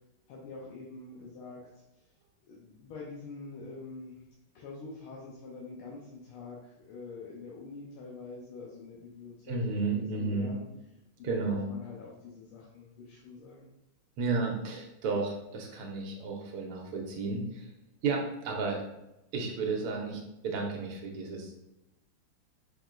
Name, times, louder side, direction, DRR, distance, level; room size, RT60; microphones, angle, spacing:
voice 1, 0.3-1.8 2.5-4.2 4.6-9.6 9.9-10.6 11.2-13.7, left 4 dB, 80° left, -4 dB, 1.6 m, -45 dB
voice 2, 9.5-10.5 11.2-11.7 14.2-17.7 18.0-18.9 19.3-21.7, right 4 dB, 85° right, 0 dB, 1.7 m, -33 dB
5.5 x 3.6 x 2.4 m, 0.91 s
omnidirectional pair, 2.4 m